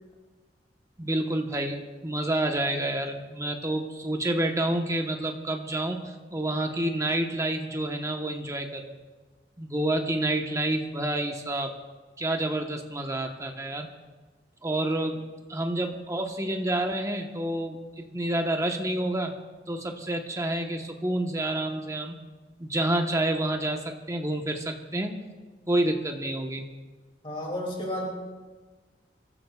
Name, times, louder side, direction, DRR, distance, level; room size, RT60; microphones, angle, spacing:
voice 1, 1.0-8.9 9.6-11.7 12.2-13.9 14.6-15.2 15.5-19.3 19.7-22.1 22.6-25.3 25.7-26.6, right 1 dB, 20° right, 4 dB, 1.1 m, -28 dB
voice 2, 27.2-28.1, left 1 dB, 30° left, -2 dB, 2.6 m, -32 dB
26.0 x 14.0 x 2.4 m, 1.3 s
head